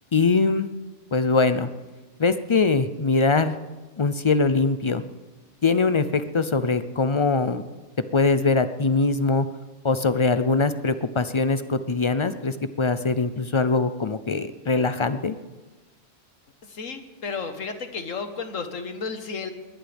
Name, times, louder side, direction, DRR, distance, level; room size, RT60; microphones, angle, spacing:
voice 1, 0.1-0.7 1.1-1.7 2.2-3.6 4.0-5.0 5.6-7.6 8.1-9.5 9.8-15.3, left 3 dB, 50° left, 11 dB, 0.3 m, -22 dB
voice 2, 16.6-19.5, left 5 dB, 90° left, 7 dB, 1.7 m, -33 dB
21.5 x 19.5 x 3.5 m, 1.2 s
omnidirectional pair, 1.3 m